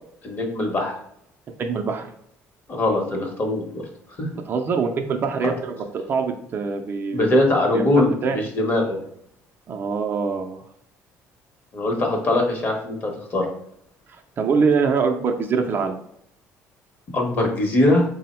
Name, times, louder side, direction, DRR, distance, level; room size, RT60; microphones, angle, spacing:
voice 1, 0.2-1.0 2.7-3.8 4.2-4.3 5.4-5.5 7.1-9.0 11.7-13.5 17.1-18.0, left 1 dB, 35° left, 2 dB, 0.9 m, -21 dB
voice 2, 1.6-2.1 4.3-7.4 7.7-8.4 9.7-10.6 14.4-16.0, right 5 dB, 40° right, 4 dB, 0.4 m, -24 dB
3.5 x 2.0 x 4.2 m, 0.72 s
cardioid pair, 120°, 6 cm